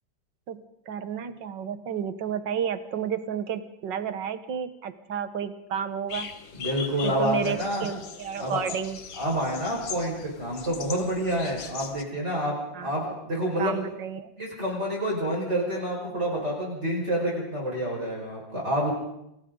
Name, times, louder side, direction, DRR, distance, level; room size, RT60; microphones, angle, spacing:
voice 1, 0.9-6.3 7.0-9.0 12.7-12.9 13.6-14.3, right 8 dB, 70° right, 10 dB, 1.9 m, -31 dB
sound 1, 6.1-12.0, left 6 dB, 80° left, 2.1 m, -40 dB
voice 2, 6.5-7.9 8.4-8.6 9.2-13.8 14.4-18.9, equal, 35° right, -3 dB, 5.8 m, -28 dB
29.0 x 23.5 x 3.9 m, 0.81 s
omnidirectional pair, 2.1 m